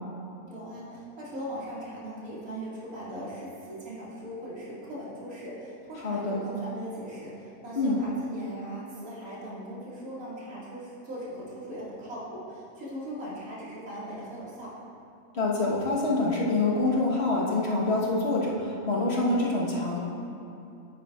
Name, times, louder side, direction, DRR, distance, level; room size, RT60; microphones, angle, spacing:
voice 1, 0.5-14.7, equal, 90° right, -8 dB, 2.5 m, -39 dB
voice 2, 6.0-6.4 7.7-8.0 15.3-20.0, left 2 dB, 50° left, -4 dB, 1.4 m, -26 dB
9.5 x 9.1 x 2.3 m, 2.6 s
omnidirectional pair, 1.5 m